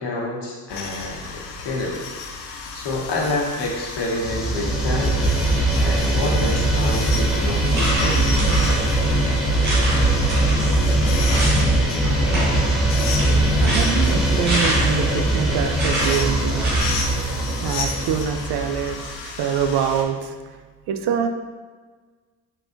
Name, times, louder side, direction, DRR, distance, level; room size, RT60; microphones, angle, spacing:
voice 1, 0.0-2.0 2.4-5.1 5.8-8.4, left 2 dB, 55° left, -2 dB, 1.2 m, -28 dB
sound 1, 0.7-20.0, left 4 dB, 90° left, 0.6 m, -34 dB
sound 2, 4.2-19.0, right 1 dB, ahead, 0.9 m, -21 dB
sound 3, 7.0-7.2 7.6-9.2 9.6-11.7 12.0-15.1 15.8-17.1, equal, 85° right, 1.4 m, -27 dB
voice 2, 13.6-16.6 17.3-20.3 20.9-21.3, right 7 dB, 55° right, 6 dB, 0.6 m, -25 dB
4.4 x 4.0 x 2.6 m, 1.4 s
hypercardioid pair, 45°, 48 cm